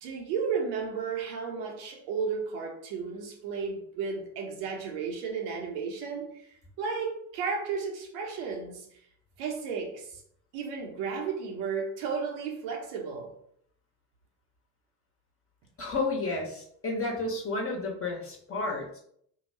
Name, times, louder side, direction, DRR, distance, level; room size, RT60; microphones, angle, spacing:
voice 1, 0.0-8.9 9.4-10.2 10.5-13.3, right 5 dB, 80° right, 0.9 m, -33 dB
voice 2, 15.8-19.0, left 2 dB, 30° left, 1.2 m, -31 dB
2.8 x 2.3 x 4.1 m
hypercardioid pair, 70°, 46 cm